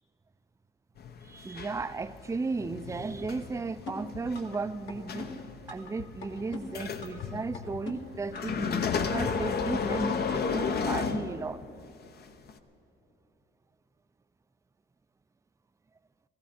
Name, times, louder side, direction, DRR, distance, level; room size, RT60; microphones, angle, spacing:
sound 1, 1.0-11.8 12.5-12.6, left 5 dB, 55° left, 0.8 m, -33 dB
voice 1, 1.2-5.3 5.7-11.6, right 4 dB, 15° right, 12 dB, 0.4 m, -35 dB
sound 2, 3.9-4.6 4.9-5.9 6.2-7.2 7.5-8.6 8.9-9.0, left 4 dB, 70° left, 2.1 m, -42 dB
18.0 x 15.0 x 4.3 m, 2.9 s
cardioid pair, 90°, 20 cm